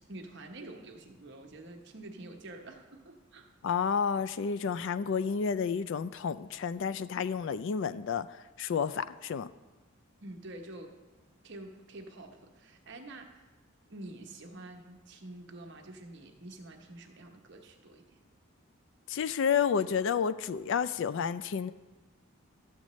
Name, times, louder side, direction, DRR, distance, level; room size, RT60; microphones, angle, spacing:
voice 1, 0.1-3.5 10.2-11.0 11.4-13.4 13.9-18.2, right 2 dB, 55° right, 4 dB, 1.0 m, -47 dB
voice 2, 3.6-8.3 8.6-9.5 19.1-21.7, left 6 dB, 60° left, 15 dB, 0.3 m, -30 dB
13.0 x 7.5 x 3.1 m, 1.2 s
head